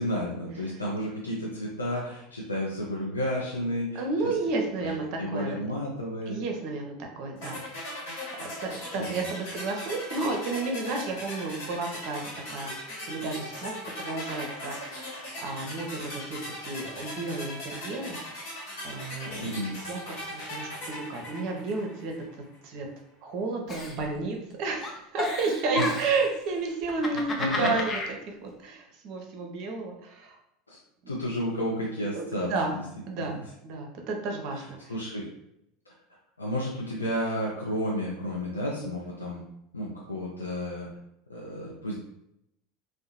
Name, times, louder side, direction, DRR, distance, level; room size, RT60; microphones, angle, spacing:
voice 1, 0.0-4.3 4.8-4.9 5.2-6.4 9.0-9.3 19.4-19.8 25.7-25.9 27.1-27.8 30.7-30.8 31.1-32.5 32.7-32.8 33.2-33.4 34.5-35.3 36.4-39.4 39.7-40.9 41.3-42.0, equal, 80° left, -4 dB, 0.4 m, -32 dB
voice 2, 3.9-5.6 6.3-7.6 8.4-12.2 12.5-12.7 13.1-18.5 18.8-22.1 22.6-22.9 23.2-28.0 28.3-30.4 32.2-32.8 33.0-34.8, right 3 dB, 50° right, 2 dB, 0.5 m, -32 dB
sound 1, 7.4-22.3, left 1 dB, 60° left, 1.1 m, -39 dB
Giggle, 23.7-24.5 24.8-26.3 26.8-28.1, left 2 dB, 25° left, 0.5 m, -32 dB
2.7 x 2.0 x 2.8 m, 0.80 s
figure-of-eight pair, 75°, 0 cm